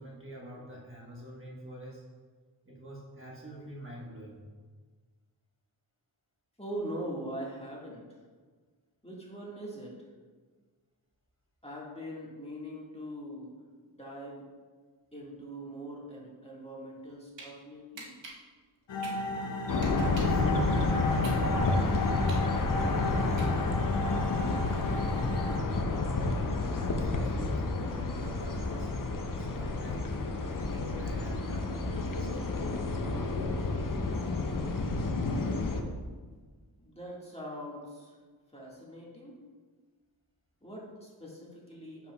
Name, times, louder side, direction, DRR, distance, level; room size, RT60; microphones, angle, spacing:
voice 1, 0.0-2.0 2.6-4.4 20.1-22.0 26.7-30.1 30.5-32.4, right 1 dB, 30° right, -4 dB, 1.3 m, -45 dB
voice 2, 6.6-8.2 9.0-10.1 11.6-13.6 13.9-14.4 15.1-18.1 36.8-38.2 38.5-39.4 40.6-42.1, equal, 15° left, -4 dB, 1.8 m, -42 dB
sound 1, 16.9-17.5 18.0-20.4 20.9-23.9, right 3 dB, 80° right, 1.2 m, -47 dB
sound 2, 18.9-25.6, left 2 dB, 75° left, 0.8 m, -35 dB
sound 3, 19.7-35.8, left 3 dB, 45° left, 0.7 m, -30 dB
7.2 x 5.8 x 2.3 m, 1.5 s
cardioid pair, 45°, 44 cm